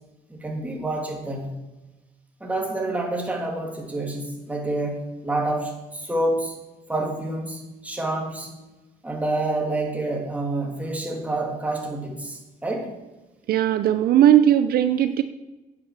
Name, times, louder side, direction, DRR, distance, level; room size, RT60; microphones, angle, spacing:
voice 1, 0.3-1.6 2.4-6.5 6.9-8.5 9.0-12.9, right 2 dB, 10° right, 0 dB, 2.9 m, -28 dB
voice 2, 13.5-15.2, right 11 dB, 65° right, 10 dB, 0.7 m, -18 dB
9.6 x 7.8 x 7.4 m, 1.1 s
cardioid pair, 110°, 17 cm